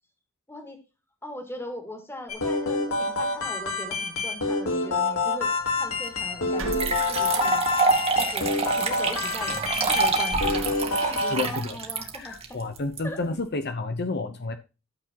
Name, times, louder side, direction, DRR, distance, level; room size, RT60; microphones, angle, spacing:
voice 1, 0.5-0.8 1.2-7.7 8.2-9.6 9.9-10.7 11.0-12.3 13.0-13.2, equal, 10° left, 5 dB, 2.3 m, -39 dB
sound 1, 2.3-11.4, left 3 dB, 80° left, 4.0 m, -27 dB
sound 2, 5.5-5.6 6.6-8.0 8.4-8.6 9.1-11.2, right 1 dB, 70° right, 2.2 m, -38 dB
sound 3, 6.0-6.1 6.7-13.0, right 4 dB, 30° right, 1.8 m, -26 dB
voice 2, 11.3-11.8 12.2-14.6, left 3 dB, 55° left, 8 dB, 0.9 m, -30 dB
13.0 x 7.1 x 3.0 m, 0.29 s
head